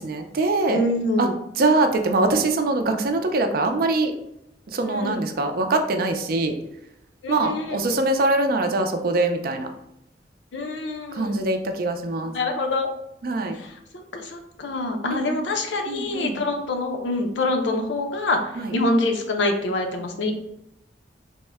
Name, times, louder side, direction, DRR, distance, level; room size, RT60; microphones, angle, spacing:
voice 1, 0.0-0.8 1.2-1.3 1.6-4.1 4.7-6.6 7.3-9.7 11.1-12.3 13.2-13.6 15.9-16.4 18.6-18.7, right 2 dB, 55° right, 6 dB, 0.4 m, -23 dB
voice 2, 0.7-1.4 4.9-5.2 7.2-7.8 10.5-11.4 12.2-12.9 13.5-20.3, left 2 dB, 90° left, 4 dB, 0.6 m, -26 dB
3.5 x 2.1 x 3.4 m, 0.81 s
head